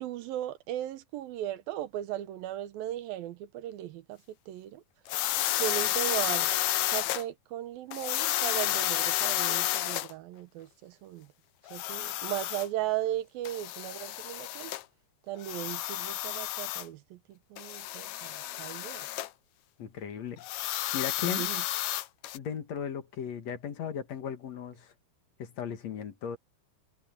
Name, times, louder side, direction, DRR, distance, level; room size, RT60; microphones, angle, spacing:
voice 1, 0.0-4.8 5.5-6.5 6.9-11.3 11.7-14.7 15.3-19.1 21.2-21.6, right 13 dB, 75° right, 2.7 m, -37 dB
sound 1, 5.1-7.2 7.9-10.1 11.7-12.7 13.5-14.8 15.4-16.9 17.6-19.3 20.4-22.4, left 14 dB, 85° left, 1.7 m, -31 dB
voice 2, 19.8-20.4 20.9-21.5 22.3-24.9 25.4-26.4, left 8 dB, 55° left, 2.4 m, -36 dB
omnidirectional pair, 4.3 m